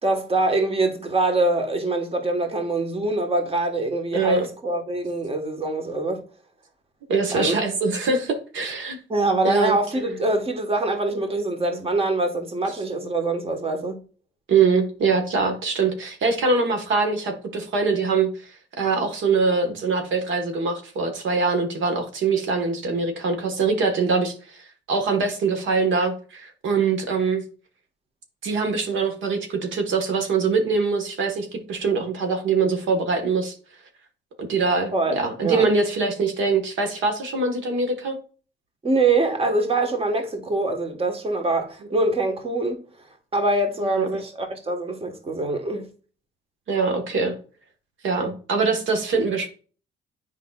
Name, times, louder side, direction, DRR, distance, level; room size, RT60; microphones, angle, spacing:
voice 1, 0.0-6.2 7.3-7.6 9.1-14.0 34.9-35.6 38.8-42.8 43.3-45.9, right 2 dB, 30° right, 1.4 m, -24 dB
voice 2, 4.1-4.5 7.1-9.0 9.4-9.8 14.5-27.4 28.4-33.5 34.4-38.2 43.8-44.1 46.7-47.4 48.0-49.5, right 4 dB, 75° right, 1.4 m, -23 dB
7.9 x 5.0 x 2.4 m
cardioid pair, 90°, 20 cm